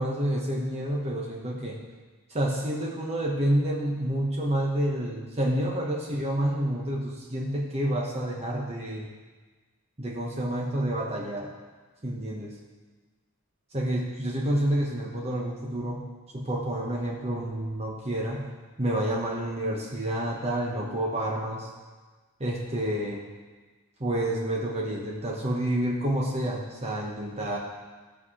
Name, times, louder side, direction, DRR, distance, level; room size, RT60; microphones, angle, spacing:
voice 1, 0.0-1.8 2.3-9.1 10.0-11.5 12.0-12.6 13.7-16.1 16.3-18.5 18.8-21.7 22.4-23.2 24.0-27.6, right 1 dB, 30° right, -2 dB, 1.2 m, -29 dB
16.0 x 5.8 x 4.9 m, 1.3 s
head